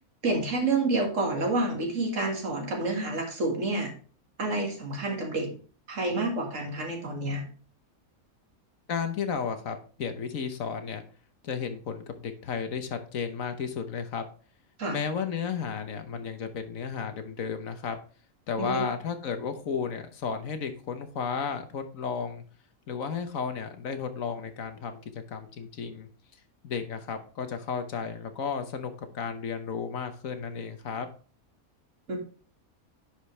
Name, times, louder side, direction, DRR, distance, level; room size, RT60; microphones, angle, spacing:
voice 1, 0.2-3.9 4.4-5.5 5.9-7.4 14.8-15.0 18.6-18.8 32.1-32.2, right 2 dB, 60° right, 2 dB, 2.2 m, -28 dB
voice 2, 8.9-11.0 11.4-14.2 14.9-18.0 18.5-22.4 22.9-26.1 26.6-31.1, left 6 dB, 70° left, 8 dB, 1.3 m, -33 dB
10.5 x 5.1 x 3.2 m, 0.40 s
omnidirectional pair, 1.5 m